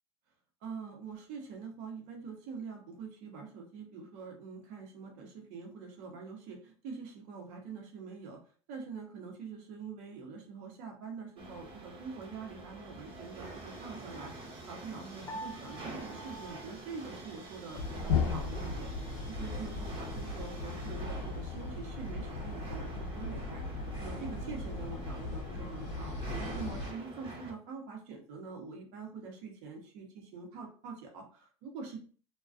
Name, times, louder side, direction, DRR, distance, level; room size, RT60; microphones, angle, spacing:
voice 1, 0.6-8.4 8.7-14.3 14.7-18.9 19.3-23.6 24.0-26.2 26.5-32.0, right 5 dB, 70° right, 2 dB, 0.8 m, -45 dB
sound 1, 11.4-27.5, right 2 dB, 35° right, 0.8 m, -46 dB
Piano, 15.3-17.8, equal, 20° left, 0.5 m, -47 dB
sound 2, 17.7-26.9, left 4 dB, 80° left, 0.5 m, -37 dB
2.3 x 2.2 x 2.5 m, 0.41 s
supercardioid pair, 100°, 15 cm